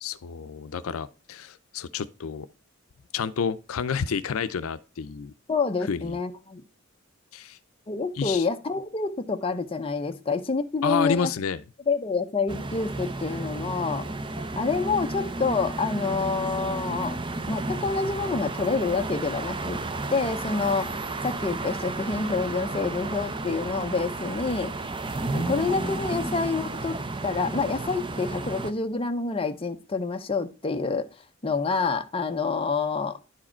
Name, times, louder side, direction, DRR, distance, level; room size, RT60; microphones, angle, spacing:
voice 1, 0.0-2.5 3.1-5.3 5.9-6.2 7.3-7.6 8.2-8.4 10.8-11.6 25.3-25.7, left 6 dB, 90° left, 0.5 m, -30 dB
voice 2, 5.5-6.6 7.9-11.3 11.9-14.1 14.6-17.2 17.5-19.8 20.1-20.9 21.2-24.7 25.5-31.1 31.4-33.2, left 4 dB, 25° left, 0.6 m, -27 dB
sound 1, 12.5-28.7, right 2 dB, 25° right, 0.6 m, -32 dB
10.5 x 4.8 x 4.3 m
head